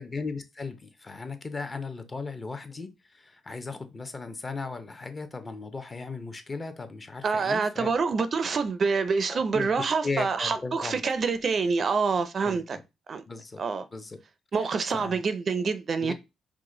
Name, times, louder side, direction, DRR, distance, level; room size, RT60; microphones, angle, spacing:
voice 1, 0.0-7.9 9.3-11.0 12.4-12.6 13.3-13.6 13.9-14.2 14.9-15.2 16.0-16.1, left 4 dB, 30° left, 0.6 m, -36 dB
voice 2, 7.2-12.8 13.1-13.2 13.6-13.9 14.5-16.1, right 5 dB, 45° right, 0.4 m, -26 dB
4.8 x 2.1 x 3.7 m
cardioid pair, 90°, 0 cm